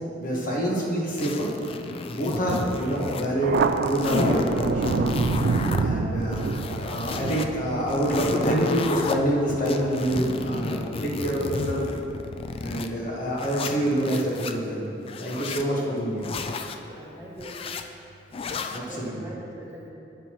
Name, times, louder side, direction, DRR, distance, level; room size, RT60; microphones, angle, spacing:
voice 1, 0.2-1.5 2.1-5.1 5.8-11.8 12.6-14.9 15.2-16.3 18.7-19.2, equal, 45° left, -3 dB, 1.2 m, -26 dB
sound 1, 1.2-3.3 3.5-5.8 6.2-7.5 7.9-9.2 9.7-12.9 13.4-14.5 15.0-15.7 16.2-16.8 17.4-17.8 18.3-18.8, left 3 dB, 30° left, 0.3 m, -32 dB
Thunder, 3.4-10.5, right 4 dB, 60° right, 0.3 m, -28 dB
voice 2, 16.9-17.6 18.7-19.9, right 1 dB, 15° right, -6 dB, 1.3 m, -42 dB
9.1 x 7.9 x 3.0 m, 2.8 s
head